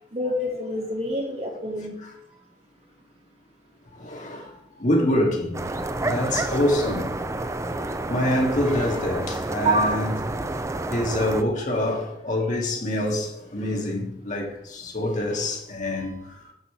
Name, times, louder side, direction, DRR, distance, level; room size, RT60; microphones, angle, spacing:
voice 1, 0.1-2.0 9.6-10.0, right 1 dB, 35° right, 2.5 m, -26 dB
voice 2, 3.9-4.5 4.8-5.6 6.0-7.2 7.7-10.6 10.9-16.4, left 1 dB, 45° left, 2.4 m, -26 dB
sound 1, 5.5-11.4, right 2 dB, 15° right, 0.5 m, -29 dB
8.4 x 6.1 x 7.1 m
head